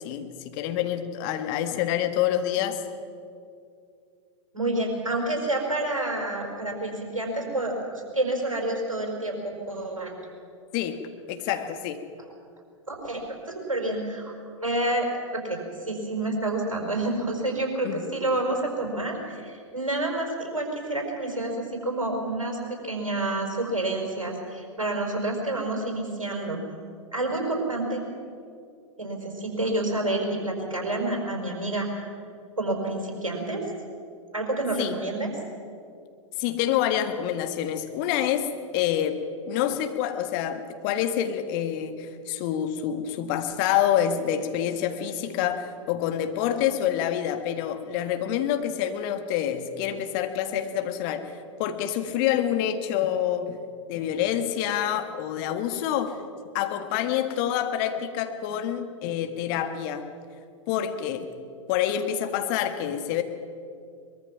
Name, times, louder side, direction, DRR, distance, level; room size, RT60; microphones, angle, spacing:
voice 1, 0.0-2.8 10.7-11.0 11.3-12.0 17.8-18.1 34.8-35.0 36.4-39.2 39.5-51.3 51.6-53.6 53.9-56.2 56.5-60.1 60.7-61.3 61.7-63.2, left 10 dB, 40° left, 7 dB, 1.7 m, -27 dB
voice 2, 4.5-10.1 11.5-11.6 12.9-14.3 14.6-15.1 15.3-15.6 15.8-26.6 27.1-28.0 29.0-32.0 32.6-33.6 34.3-35.3, right 2 dB, 80° right, 0 dB, 4.9 m, -29 dB
23.0 x 22.0 x 5.9 m, 2.4 s
figure-of-eight pair, 100°, 17 cm